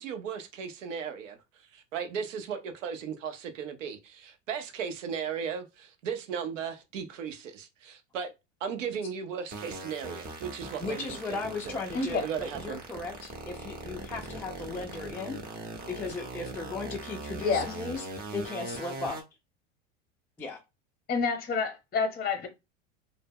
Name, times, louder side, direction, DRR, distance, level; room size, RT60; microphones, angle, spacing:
voice 1, 0.0-1.4 1.7-8.3 8.6-11.4 12.2-12.8, right 7 dB, 80° right, 0.6 m, -36 dB
sound 1, 9.5-19.2, right 2 dB, 25° right, 0.7 m, -40 dB
voice 2, 10.8-15.4 15.9-18.1 18.3-19.2 20.4-20.6, left 3 dB, 5° left, 0.3 m, -36 dB
voice 3, 17.4-17.7 21.1-22.5, left 4 dB, 25° left, 0.8 m, -28 dB
2.0 x 2.0 x 3.4 m
hypercardioid pair, 90°, 37 cm